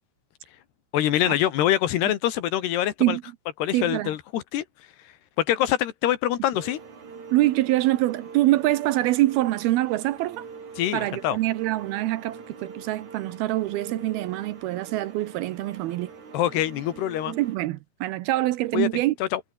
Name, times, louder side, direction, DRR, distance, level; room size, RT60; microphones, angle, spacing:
voice 1, 0.9-3.2 3.6-4.7 5.4-6.8 10.8-11.4 16.3-17.3 18.7-18.9 19.2-19.4, left 12 dB, 75° left, 3.7 m, -24 dB
voice 2, 3.7-4.1 7.3-10.4 10.9-16.1 17.3-19.1, right 16 dB, 75° right, 2.5 m, -25 dB
sound 1, 6.5-17.6, right 5 dB, 45° right, 5.4 m, -44 dB
omnidirectional pair, 4.8 m